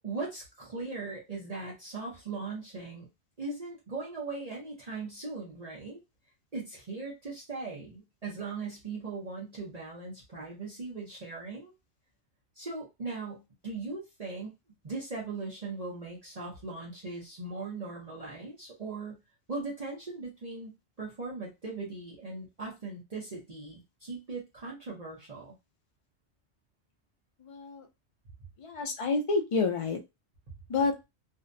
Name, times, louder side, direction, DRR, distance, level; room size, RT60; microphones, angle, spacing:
voice 1, 0.0-3.1 3.4-6.0 6.5-11.7 12.6-14.5 14.8-19.2 19.5-20.7 21.0-25.5 30.5-30.6, right 3 dB, 40° right, -5 dB, 0.8 m, -39 dB
voice 2, 27.4-27.9 28.6-30.0 30.7-31.0, left 4 dB, 60° left, 4 dB, 0.3 m, -29 dB
2.6 x 2.1 x 2.5 m, 0.23 s
omnidirectional pair, 1.1 m